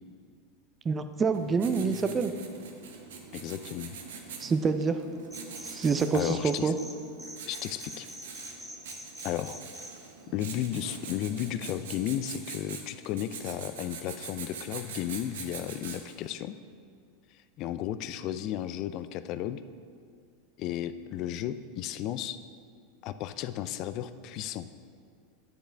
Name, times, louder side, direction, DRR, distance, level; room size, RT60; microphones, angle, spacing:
voice 1, 0.8-2.3 4.4-5.0 5.7-6.7, right 5 dB, 25° right, 9 dB, 0.5 m, -26 dB
Writing, 1.3-16.3, right 5 dB, 85° right, 0.9 m, -44 dB
voice 2, 3.3-4.0 6.1-6.7 7.5-8.1 9.2-9.6 10.3-16.5 17.6-19.6 20.6-22.4 23.0-24.7, left 11 dB, 50° left, 12 dB, 0.4 m, -34 dB
sound 1, 5.3-6.9 7.2-9.9, equal, 5° right, 1.2 m, -44 dB
8.8 x 7.8 x 3.4 m, 2.1 s
hypercardioid pair, 110°, 0 cm